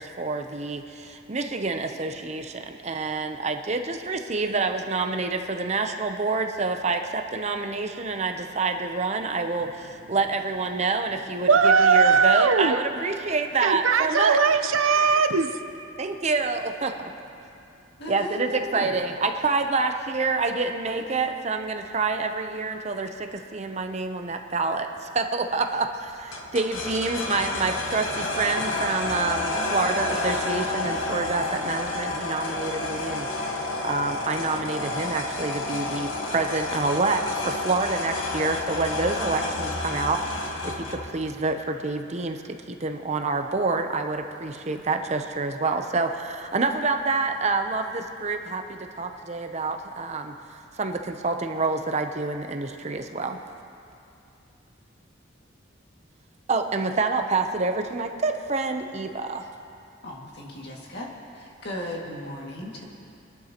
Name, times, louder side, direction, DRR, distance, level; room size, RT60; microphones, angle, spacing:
voice 1, 0.0-11.5 11.8-14.4 16.0-16.9 18.1-24.9 25.2-50.3 50.8-53.4 56.5-59.5, right 3 dB, 35° right, 6 dB, 0.6 m, -27 dB
voice 2, 11.5-12.8 13.6-15.6, right 5 dB, 85° right, 9 dB, 0.7 m, -19 dB
voice 3, 18.0-18.9 60.0-61.1 61.3-62.8, left 1 dB, 55° left, -3 dB, 2.1 m, -36 dB
sound 1, 26.3-41.2, left 2 dB, 75° left, 1.4 m, -30 dB
24.0 x 11.5 x 2.9 m, 2.6 s
head